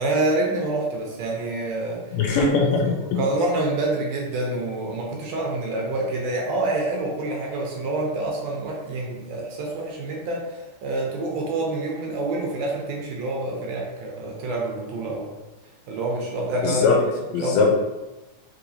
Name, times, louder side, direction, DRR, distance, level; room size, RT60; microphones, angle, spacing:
voice 1, 0.0-2.2 2.6-15.3 15.9-17.0 17.4-17.7, right 2 dB, 75° right, -1 dB, 1.8 m, -27 dB
voice 2, 2.1-3.2 16.6-17.0 17.3-17.7, left 4 dB, 75° left, -1 dB, 1.8 m, -21 dB
4.9 x 3.1 x 2.7 m, 1.1 s
omnidirectional pair, 3.4 m